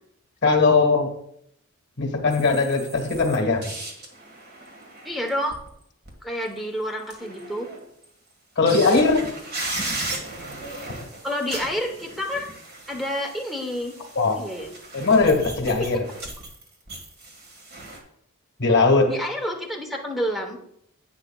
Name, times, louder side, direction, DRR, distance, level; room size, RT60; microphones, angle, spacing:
voice 1, 0.4-1.1 2.0-3.7 8.5-9.3 14.1-14.4 14.9-16.0 18.6-19.1, left 3 dB, 50° left, 3 dB, 1.6 m, -19 dB
sound 1, 2.3-6.1 6.4-6.5 7.0-8.0 8.7-18.0, right 2 dB, 45° right, 1.7 m, -36 dB
voice 2, 5.0-5.6 6.2-7.7 11.2-12.5 12.9-13.9 14.3-14.7 15.8-15.9 19.1-20.6, equal, ahead, 2 dB, 1.0 m, -29 dB
10.5 x 8.5 x 2.3 m, 0.72 s
head